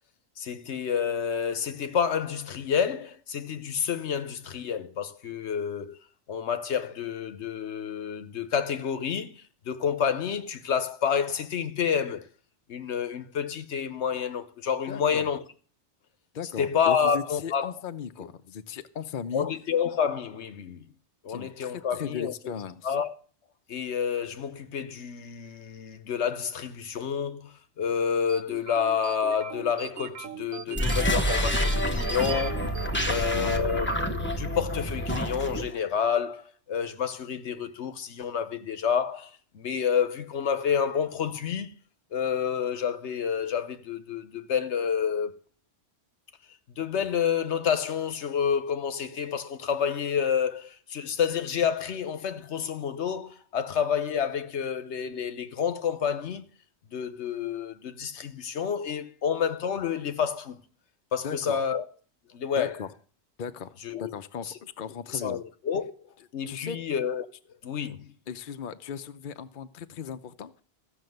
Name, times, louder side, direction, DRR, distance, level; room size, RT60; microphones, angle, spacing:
voice 1, 0.4-6.0 6.3-12.3 12.7-15.4 16.6-17.7 19.3-20.9 21.2-22.5 22.8-23.1 23.7-32.8 33.0-41.7 42.1-45.3 46.8-56.5 56.9-60.6 61.1-61.8 62.3-62.8 63.8-64.1 64.4-64.5 65.1-65.9 66.3-67.3 67.6-68.1, left 7 dB, 80° left, 1.2 m, -29 dB
voice 2, 14.9-15.3 16.3-19.5 21.3-22.9 33.1-33.6 61.2-61.6 62.6-62.9 63.4-65.4 66.5-66.8 68.3-70.6, left 7 dB, 55° left, 0.8 m, -37 dB
sound 1, 28.3-34.0, right 8 dB, 65° right, 1.0 m, -40 dB
sound 2, 30.7-35.8, equal, 10° left, 0.8 m, -28 dB
14.5 x 6.5 x 7.8 m
omnidirectional pair, 1.2 m